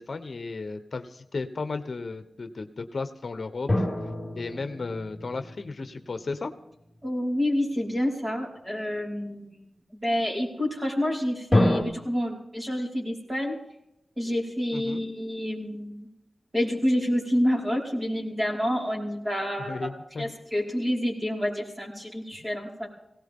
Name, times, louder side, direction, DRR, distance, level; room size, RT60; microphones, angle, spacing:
voice 1, 0.0-3.8 4.3-6.5 14.7-15.0 19.7-20.3, left 3 dB, 55° left, 9 dB, 1.0 m, -34 dB
sound 1, 3.7-6.6 11.5-11.8, left 1 dB, 15° left, 4.0 m, -27 dB
voice 2, 7.0-9.6 9.9-13.6 14.2-16.1 16.5-19.9 20.2-22.9, equal, 20° right, -2 dB, 5.0 m, -28 dB
19.5 x 17.5 x 3.7 m, 0.80 s
wide cardioid pair, 115°, 0 cm